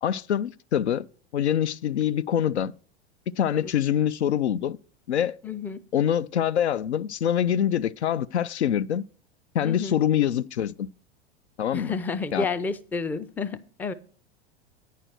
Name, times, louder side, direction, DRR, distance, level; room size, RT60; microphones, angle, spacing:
voice 1, 0.0-1.1 1.3-2.7 3.4-4.8 5.1-5.4 5.9-9.0 9.5-10.9 11.6-11.9 12.3-12.5, left 9 dB, 75° left, 0.5 m, -25 dB
voice 2, 5.4-5.8 9.6-10.0 11.7-13.9, left 4 dB, 5° left, 0.4 m, -30 dB
9.2 x 5.7 x 6.3 m
figure-of-eight pair, 85°, 33 cm